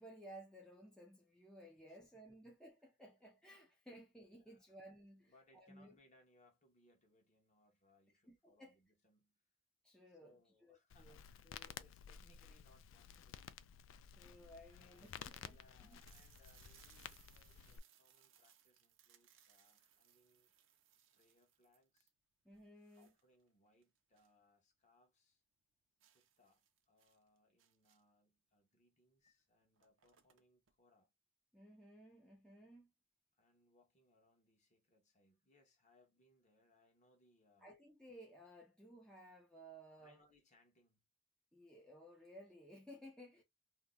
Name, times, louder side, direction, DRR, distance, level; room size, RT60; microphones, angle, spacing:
voice 1, 0.0-6.0 8.3-8.7 9.8-10.4 10.6-11.2 11.4-11.8 14.0-16.0 22.4-23.1 31.5-32.9 37.6-40.2 41.5-43.4, equal, 5° left, 0.6 m, -58 dB
voice 2, 1.9-2.4 4.3-4.6 5.2-9.5 10.1-13.4 14.7-20.5 21.2-22.1 22.9-25.4 26.1-31.1 33.3-37.7 40.0-41.0 43.3-43.4, left 2 dB, 35° left, 1.1 m, -73 dB
Crackle, 10.9-17.8, left 8 dB, 80° left, 0.3 m, -54 dB
sound 1, 13.4-13.5 14.1-14.2 14.5-14.6 14.9-24.4 24.8-24.9 25.2-25.3 26.0-28.2 29.2-29.3 29.6-30.7, right 10 dB, 80° right, 0.6 m, -70 dB
2.8 x 2.1 x 3.7 m
head